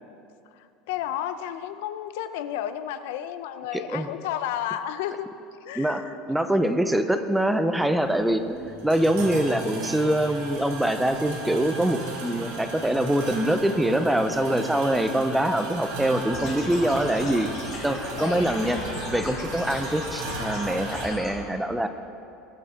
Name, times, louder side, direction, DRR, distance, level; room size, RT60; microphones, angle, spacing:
voice 1, 0.6-5.3 5.6-6.1 18.2-18.5 19.8-19.9, left 11 dB, 75° left, 11 dB, 0.6 m, -32 dB
voice 2, 3.7-4.1 5.8-17.5 17.8-18.8 19.1-21.9, right 1 dB, 5° right, 9 dB, 0.4 m, -24 dB
sound 1, 7.9-21.1, right 2 dB, 75° right, 2.8 m, -36 dB
sound 2, 16.3-21.3, left 2 dB, 40° left, 2.9 m, -36 dB
20.5 x 6.9 x 4.9 m, 2.6 s
cardioid pair, 175°, 0 cm